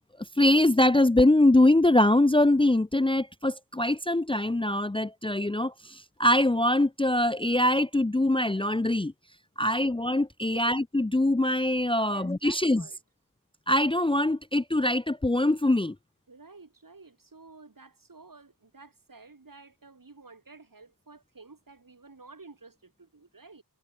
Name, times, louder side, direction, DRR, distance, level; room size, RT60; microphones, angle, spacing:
voice 1, 0.4-9.1 9.6-12.8 13.7-16.0, left 1 dB, 15° left, 0.7 m, -23 dB
voice 2, 12.0-13.0 16.3-23.6, right 3 dB, 55° right, 4.0 m, -52 dB
wide cardioid pair, 50°, 39 cm